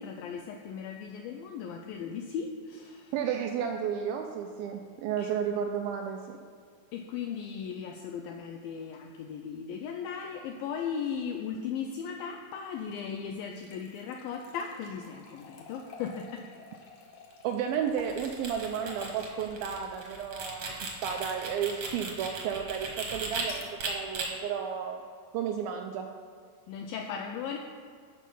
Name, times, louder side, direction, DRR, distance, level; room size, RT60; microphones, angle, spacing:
voice 1, 0.0-3.1 5.2-5.3 6.9-16.5 26.7-27.6, left 7 dB, 90° left, 3 dB, 2.1 m, -37 dB
voice 2, 3.1-6.4 17.4-25.0 25.3-26.1, right 8 dB, 85° right, 4 dB, 2.1 m, -33 dB
sound 1, 12.8-21.2 21.7-21.8 23.3-23.8, left 4 dB, 70° left, 1.8 m, -51 dB
sound 2, 17.9-23.4 23.8-24.3, right 4 dB, 55° right, 1.9 m, -37 dB
12.5 x 6.4 x 5.4 m, 2.1 s
omnidirectional pair, 4.8 m